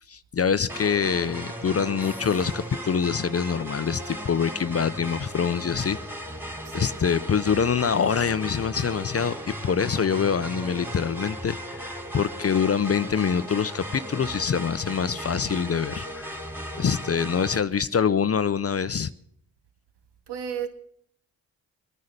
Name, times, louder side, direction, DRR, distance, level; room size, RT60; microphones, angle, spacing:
voice 1, 0.1-6.0 6.7-9.4 9.6-16.3 16.8-19.1, left 7 dB, 35° left, 0.6 m, -25 dB
sound 1, 0.7-17.6, equal, 5° right, 3.0 m, -36 dB
voice 2, 6.6-7.0 20.3-20.7, right 8 dB, 70° right, 2.0 m, -33 dB
21.0 x 9.6 x 6.6 m
supercardioid pair, 50°, 43 cm